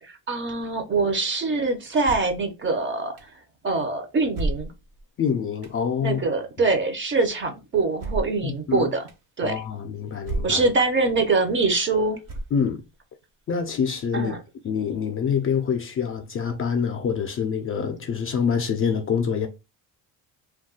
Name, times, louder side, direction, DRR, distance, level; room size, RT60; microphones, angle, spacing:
voice 1, 0.0-3.3 3.6-4.7 6.0-9.0 9.4-9.6 10.4-12.2 14.1-14.4, right 3 dB, 30° right, 0.6 m, -24 dB
sound 1, 2.0-2.4 3.2-3.3 4.3-5.0 5.6-5.8 8.0-8.4 9.1-9.2 10.2-10.7 11.2-11.3 12.2-12.8, right 2 dB, 60° right, 1.1 m, -31 dB
voice 2, 5.2-6.2 8.4-8.9 9.4-10.6 12.5-12.8 13.5-14.3 14.6-19.5, left 6 dB, 35° left, 0.4 m, -26 dB
2.3 x 2.2 x 3.7 m
cardioid pair, 110°, 39 cm